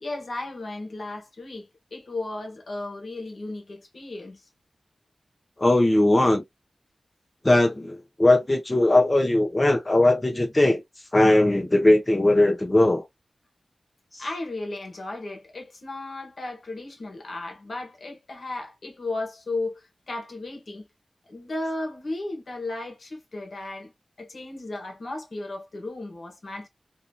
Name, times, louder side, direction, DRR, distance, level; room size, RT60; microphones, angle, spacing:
voice 1, 0.0-4.4 14.2-20.9 21.3-23.9 24.2-26.7, left 2 dB, 65° left, 1.1 m, -35 dB
voice 2, 5.6-6.4 7.4-10.8 11.1-13.0, left 1 dB, 20° left, 0.7 m, -19 dB
2.7 x 2.5 x 2.2 m
wide cardioid pair, 105°, 0 cm